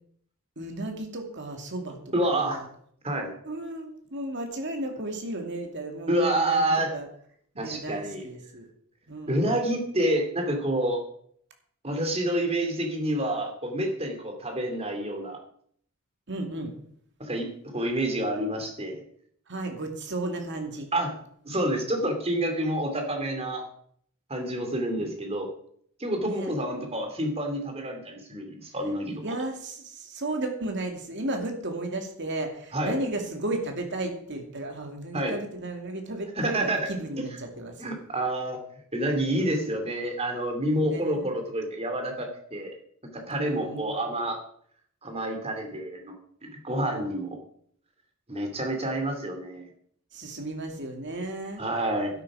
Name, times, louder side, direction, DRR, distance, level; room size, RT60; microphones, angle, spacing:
voice 1, 0.6-2.0 2.3-2.6 3.4-6.7 6.9-7.1 7.6-8.7 9.1-9.6 16.3-16.7 19.5-20.9 25.0-25.1 26.2-26.5 29.2-37.8 39.3-39.7 40.8-41.3 43.3-44.0 50.1-51.6 52.1-52.2, right 2 dB, 55° right, 4 dB, 2.5 m, -34 dB
voice 2, 2.1-2.6 3.0-3.3 6.1-6.9 7.6-8.2 9.3-11.0 11.8-15.4 17.2-19.0 20.9-21.1 21.4-23.6 24.3-25.5 26.0-29.2 32.7-33.0 35.1-35.3 36.4-36.8 37.2-37.3 37.8-38.6 38.9-42.7 43.1-44.4 45.0-46.2 46.4-47.4 48.3-49.7 51.6-52.2, right 1 dB, 30° right, 4 dB, 2.7 m, -28 dB
12.0 x 11.5 x 4.9 m, 0.63 s
head